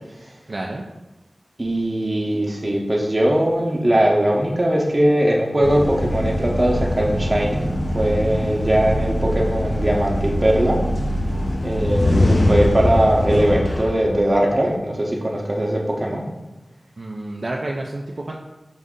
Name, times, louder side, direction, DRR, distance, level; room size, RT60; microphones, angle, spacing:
voice 1, 0.5-0.8 17.0-18.4, right 2 dB, 60° right, -1 dB, 0.4 m, -29 dB
voice 2, 1.6-7.7 7.9-10.8 11.6-16.3, right 1 dB, 35° right, -1 dB, 0.8 m, -20 dB
sound 1, 5.6-14.7, left 1 dB, 45° left, 0.4 m, -22 dB
5.2 x 2.6 x 3.7 m, 1.0 s
wide cardioid pair, 75°, 0 cm